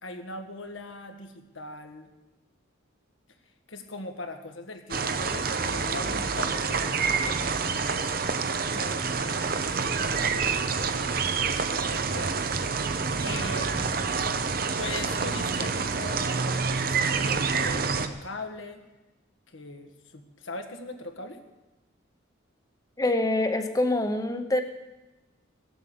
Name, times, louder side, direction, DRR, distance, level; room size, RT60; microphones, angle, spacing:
voice 1, 0.0-2.1 3.7-7.4 7.8-11.1 11.4-12.4 13.2-14.3 14.8-18.8 19.5-21.4, left 2 dB, 80° left, 6 dB, 1.5 m, -40 dB
sound 1, 4.9-18.1, right 5 dB, 45° right, 0.7 m, -27 dB
voice 2, 23.0-24.6, left 2 dB, 15° left, 7 dB, 0.9 m, -25 dB
17.5 x 7.9 x 7.2 m, 1.1 s
head